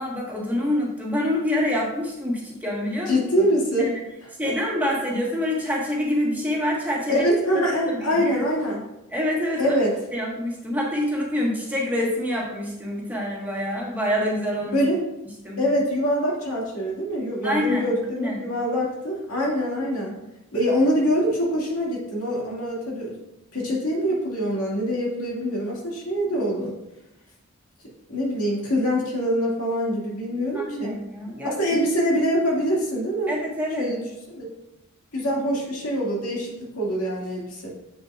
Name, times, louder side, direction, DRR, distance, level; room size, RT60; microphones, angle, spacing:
voice 1, 0.0-3.2 3.8-3.9 4.4-7.2 7.9-8.4 9.1-9.8 10.1-14.8 15.4-15.6 17.4-17.9 18.2-18.4 30.5-31.6 33.3-33.9, left 1 dB, 10° right, -3 dB, 1.4 m, -26 dB
voice 2, 3.1-3.9 7.1-8.8 9.6-9.9 14.7-15.0 15.6-20.1 20.5-23.1 23.5-26.7 28.1-31.0 31.4-33.3 33.8-34.5 35.1-37.7, equal, 90° left, -3 dB, 2.1 m, -24 dB
7.4 x 6.6 x 2.4 m, 0.91 s
head